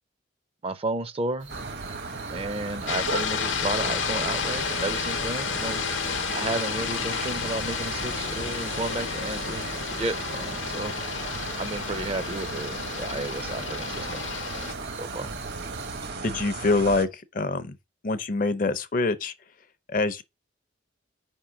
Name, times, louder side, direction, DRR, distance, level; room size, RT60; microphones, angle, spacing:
voice 1, 0.6-1.5 2.3-5.8 6.3-9.7 10.0-10.9 11.6-14.3 15.0-15.3, right 2 dB, 30° right, 0.5 m, -32 dB
sound 1, 1.4-16.1, right 3 dB, 85° right, 1.6 m, -47 dB
sound 2, 1.5-17.1, right 3 dB, 55° right, 0.9 m, -35 dB
sound 3, 2.9-14.7, left 7 dB, 75° left, 0.8 m, -31 dB
voice 2, 16.2-17.7 18.0-19.3 19.9-20.2, left 3 dB, 45° left, 0.5 m, -25 dB
5.0 x 3.7 x 5.7 m
head